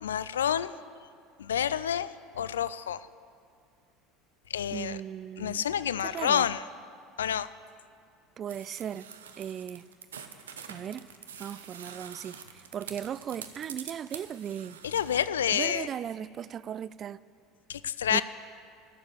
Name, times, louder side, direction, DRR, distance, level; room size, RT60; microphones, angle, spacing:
voice 1, 0.0-0.7 1.4-3.0 4.5-5.0 5.4-6.6 7.2-7.5 14.8-15.9 17.7-18.2, left 9 dB, 80° left, 0.3 m, -28 dB
voice 2, 4.7-5.7 6.0-6.5 8.4-9.1 9.4-9.9 10.7-11.1 11.4-14.8 15.5-17.2 18.1-18.2, right 9 dB, 40° right, 0.3 m, -37 dB
sound 1, 8.5-15.1, right 7 dB, 80° right, 0.8 m, -46 dB
13.5 x 7.2 x 8.4 m
hypercardioid pair, 70°, 0 cm